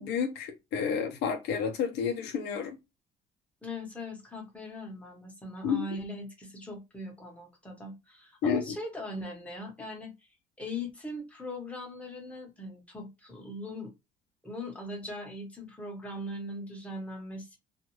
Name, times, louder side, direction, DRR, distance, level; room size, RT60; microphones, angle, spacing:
voice 1, 0.0-2.8 5.6-5.8 8.4-8.6, left 6 dB, 85° left, 0.7 m, -30 dB
voice 2, 3.6-10.1 10.6-13.9 14.4-17.6, left 1 dB, 10° left, 1.0 m, -40 dB
2.5 x 2.3 x 3.0 m
cardioid pair, 110°, 17 cm